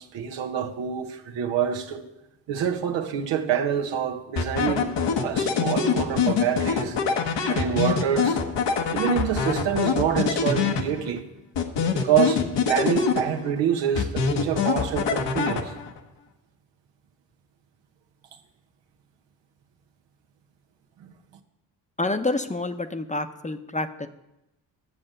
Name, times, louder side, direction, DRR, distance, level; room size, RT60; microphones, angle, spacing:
voice 1, 0.0-2.1 2.5-4.9 5.2-7.0 7.5-8.4 8.9-11.2 11.9-15.7 21.0-21.1, right 8 dB, 85° right, 1.2 m, -26 dB
sound 1, 4.4-11.2 11.6-13.6 14.0-16.0, left 6 dB, 75° left, 1.2 m, -25 dB
voice 2, 22.0-24.1, left 2 dB, 15° left, 0.8 m, -28 dB
11.0 x 7.5 x 6.6 m
cardioid pair, 65°, 43 cm